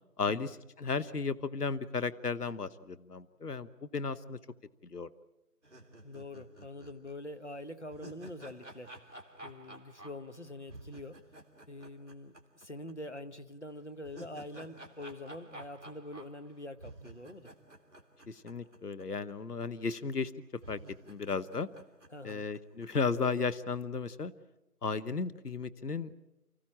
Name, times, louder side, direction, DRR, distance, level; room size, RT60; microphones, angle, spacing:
voice 1, 0.2-4.4 4.9-5.1 18.3-20.8 21.1-21.7 22.2-24.3 24.8-26.2, left 4 dB, 75° left, 14 dB, 1.1 m, -34 dB
sound 1, 5.6-12.9 13.2-13.3 13.8-19.0 19.3-19.4 20.1-20.2 20.6-22.9, right 1 dB, 45° right, 2.3 m, -52 dB
voice 2, 6.0-8.9 9.4-11.2 11.7-17.5 22.1-22.5, left 1 dB, 45° left, 9 dB, 1.2 m, -45 dB
29.5 x 15.0 x 8.7 m, 0.96 s
figure-of-eight pair, 175°, 47 cm